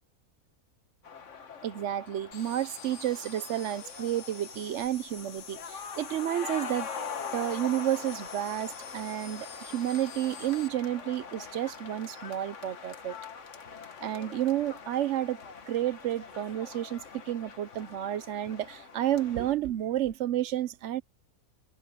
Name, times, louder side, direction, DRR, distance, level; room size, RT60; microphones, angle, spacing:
sound 1, 1.0-19.5, left 5 dB, 55° left, 1.6 m, -43 dB
voice 1, 1.6-6.9 7.3-9.5 9.7-13.1 14.0-15.4 15.7-17.0 17.3-21.0, right 12 dB, 65° right, 0.8 m, -31 dB
sound 2, 2.3-10.7, left 6 dB, 75° left, 2.1 m, -47 dB
omnidirectional pair, 1.6 m